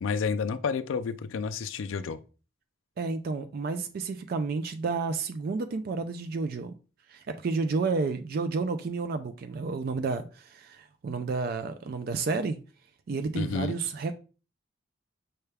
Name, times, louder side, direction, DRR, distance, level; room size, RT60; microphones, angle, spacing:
voice 1, 0.0-2.2 13.3-13.8, left 5 dB, 80° left, 0.4 m, -30 dB
voice 2, 3.0-6.7 7.1-12.6 13.1-14.2, right 4 dB, 50° right, 0.3 m, -31 dB
5.5 x 2.3 x 3.3 m
head